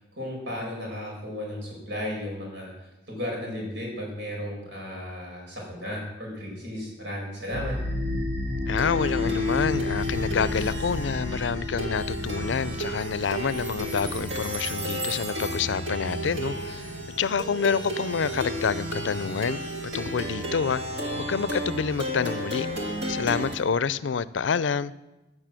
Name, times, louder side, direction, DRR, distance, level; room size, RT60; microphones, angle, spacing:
voice 1, 0.2-7.8, left 1 dB, 85° right, -2 dB, 5.2 m, -34 dB
Plucked string instrument, 7.5-23.6, left 1 dB, 70° right, 2.2 m, -31 dB
voice 2, 8.7-16.8 17.2-19.6 19.9-20.8 21.1-24.9, left 6 dB, 80° left, 17 dB, 0.5 m, -28 dB
14.0 x 6.4 x 7.6 m, 1.0 s
head